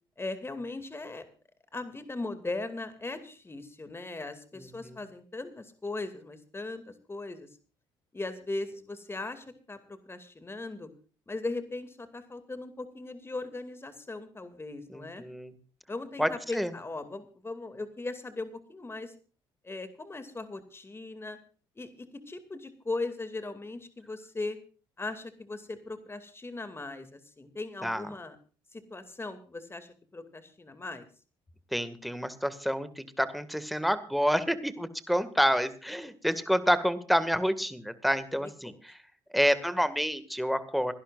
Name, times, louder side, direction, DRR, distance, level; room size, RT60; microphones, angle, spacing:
voice 1, 0.2-1.3 1.7-7.5 8.1-10.9 11.3-15.2 15.9-19.1 19.6-21.4 21.8-24.6 25.0-28.4 28.7-31.1 38.3-38.7, left 2 dB, 20° left, 10 dB, 2.3 m, -38 dB
voice 2, 14.9-15.5 16.2-16.7 27.8-28.0 31.7-38.7 39.3-40.9, equal, ahead, 13 dB, 1.9 m, -28 dB
26.5 x 11.5 x 2.5 m, 0.38 s
hypercardioid pair, 60°, 12 cm